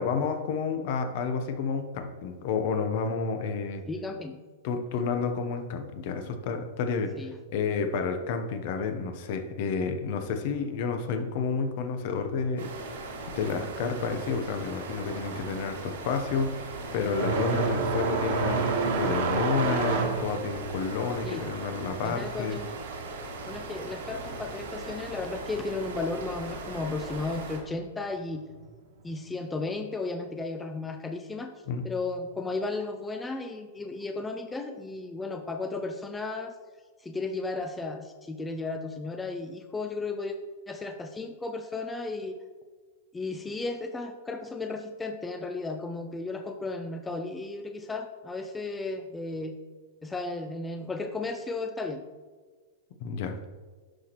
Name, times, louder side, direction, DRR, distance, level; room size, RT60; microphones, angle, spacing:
voice 1, 0.0-3.8 4.6-7.2 7.5-12.7 13.3-22.6 31.7-31.9 53.0-53.4, left 5 dB, 55° left, 7 dB, 0.8 m, -30 dB
voice 2, 3.9-4.4 7.2-7.3 21.2-21.4 22.0-22.7 23.5-28.5 29.0-31.5 31.8-36.5 37.0-40.3 40.7-42.4 43.1-49.6 50.0-52.0, left 3 dB, 10° left, 5 dB, 0.4 m, -34 dB
sound 1, 12.6-27.6, right 3 dB, 85° right, 1.7 m, -39 dB
sound 2, 15.5-23.5 23.8-24.8 25.8-25.9 26.7-26.8 28.5-28.7, right 4 dB, 70° right, 1.4 m, -30 dB
11.0 x 4.2 x 3.0 m, 1.4 s
supercardioid pair, 145°, 0 cm